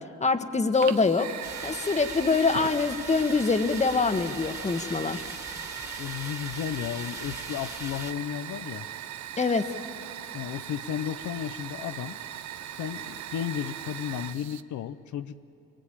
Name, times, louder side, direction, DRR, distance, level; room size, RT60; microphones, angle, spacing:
voice 1, 0.2-1.3 1.6-5.2 9.4-9.7, left 4 dB, 25° left, 9 dB, 1.3 m, -24 dB
Fire, 0.7-14.6, right 10 dB, 70° right, 0.8 m, -39 dB
sound 1, 1.4-8.1, right 2 dB, 10° right, 2.1 m, -41 dB
voice 2, 6.0-8.9 10.3-12.2 12.7-15.4, left 10 dB, 75° left, 10 dB, 0.8 m, -34 dB
23.5 x 22.5 x 8.8 m, 2.5 s
cardioid pair, 90°, 30 cm